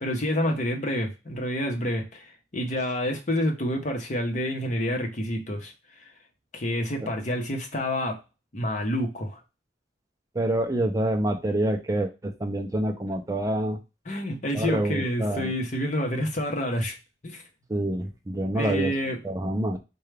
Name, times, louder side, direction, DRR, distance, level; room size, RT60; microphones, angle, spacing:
voice 1, 0.0-5.7 6.5-8.2 8.5-9.4 14.1-17.0 17.2-17.4 18.5-19.2, equal, 45° left, 0.9 m, -28 dB
voice 2, 10.4-13.8 14.5-15.5 17.7-18.9 19.2-19.8, right 1 dB, 20° right, 0.4 m, -27 dB
4.6 x 2.2 x 3.2 m
head